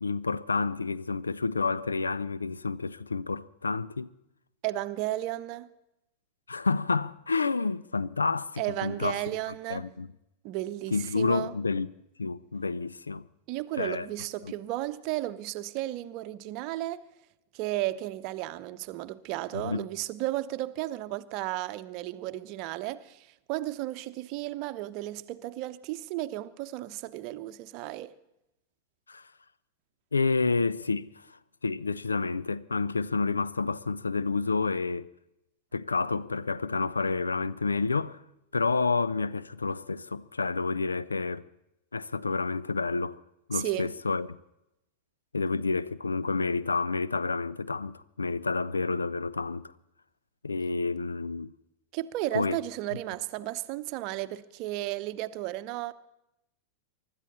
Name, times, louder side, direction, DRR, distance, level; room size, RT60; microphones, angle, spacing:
voice 1, 0.0-4.1 6.5-9.2 9.7-10.1 10.9-11.9 12.2-13.2 13.8-14.1 14.4-14.5 19.5-19.9 29.1-29.3 30.1-35.1 35.7-38.2 38.5-41.5 41.9-43.2 43.5-44.3 45.3-49.7 50.4-51.5 52.3-52.6, left 4 dB, 75° left, 0.5 m, -29 dB
voice 2, 4.6-5.7 8.6-9.9 10.4-11.6 13.5-17.0 17.5-28.1 43.5-43.9 51.9-55.9, right 16 dB, 40° right, 0.8 m, -34 dB
24.0 x 12.5 x 4.2 m
figure-of-eight pair, 90°, 0 cm